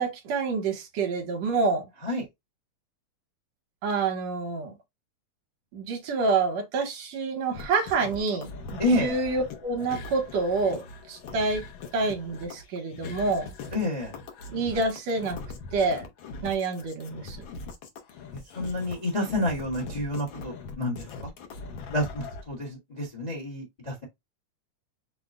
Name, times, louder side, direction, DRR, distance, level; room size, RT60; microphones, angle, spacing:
voice 1, 0.0-1.9 3.8-4.7 5.7-11.6 11.9-13.5 14.5-15.4 15.7-16.1 16.4-17.4, right 4 dB, 70° right, 2.2 m, -27 dB
sound 1, 7.5-22.4, left 3 dB, 70° left, 1.2 m, -41 dB
voice 2, 8.8-9.2 13.7-14.1 18.5-20.9 21.2-21.3 21.9-24.0, left 1 dB, 30° left, 0.8 m, -29 dB
5.9 x 2.2 x 3.7 m
omnidirectional pair, 3.3 m